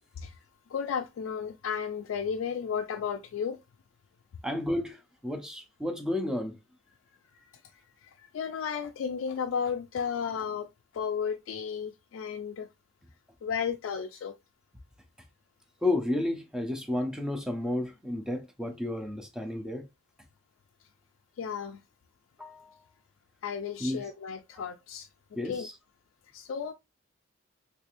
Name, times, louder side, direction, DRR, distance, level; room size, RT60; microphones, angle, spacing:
voice 1, 0.7-3.6 7.3-7.5 8.0-10.7 10.9-12.7 13.4-14.3 21.4-21.8 23.4-25.1 25.4-25.7 26.3-26.7, left 7 dB, 80° left, 0.3 m, -33 dB
voice 2, 4.4-6.6 15.8-19.9 22.4-22.7 23.8-24.0 25.4-25.7, left 1 dB, 5° right, 0.6 m, -32 dB
3.3 x 3.2 x 2.5 m
head